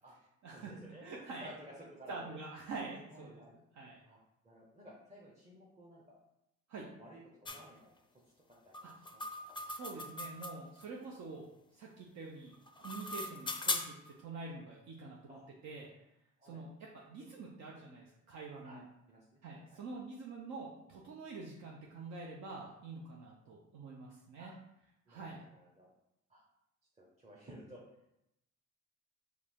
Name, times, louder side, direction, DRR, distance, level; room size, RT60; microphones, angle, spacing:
voice 1, 0.5-1.0 1.4-2.4 3.1-3.5 4.1-4.2 4.4-6.2 6.8-8.2 8.6-8.7 9.1-9.5 15.3-15.5 16.4-16.6 18.6-19.8 24.4-24.6 25.1-25.9 26.3-26.4 27.0-27.8, equal, 20° right, -5 dB, 0.9 m, -55 dB
voice 2, 1.0-1.5 2.1-3.4 3.8-4.0 6.7-6.9 8.8-8.9 9.7-12.5 12.8-15.4 15.6-15.9 16.4-18.8 19.4-24.5 25.1-25.4, right 3 dB, 65° right, -2 dB, 0.7 m, -46 dB
sound 1, 7.4-7.6 8.7-10.8 12.5-14.1, left 3 dB, 15° left, 0.4 m, -39 dB
4.7 x 2.7 x 3.6 m, 0.84 s
cardioid pair, 90°, 30 cm